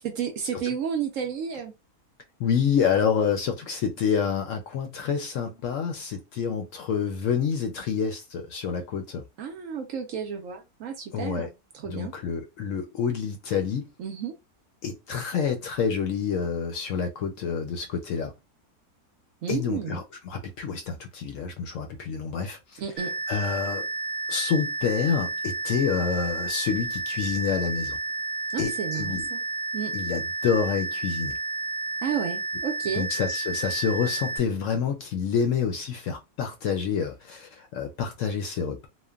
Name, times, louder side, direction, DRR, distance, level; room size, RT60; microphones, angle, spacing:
voice 1, 0.2-1.7 9.4-11.5 11.8-12.1 14.0-14.3 19.4-20.0 22.8-23.2 28.5-29.4 29.7-29.9 32.0-33.1, right 7 dB, 65° right, 0.9 m, -31 dB
voice 2, 2.4-9.2 11.1-11.5 11.9-13.9 14.8-18.3 19.5-22.6 23.3-23.9 24.3-28.0 28.6-29.3 29.9-31.4 32.9-38.9, left 6 dB, 65° left, 0.8 m, -28 dB
sound 1, 23.0-34.4, right 3 dB, 90° right, 0.5 m, -31 dB
3.1 x 2.1 x 2.3 m
omnidirectional pair, 1.6 m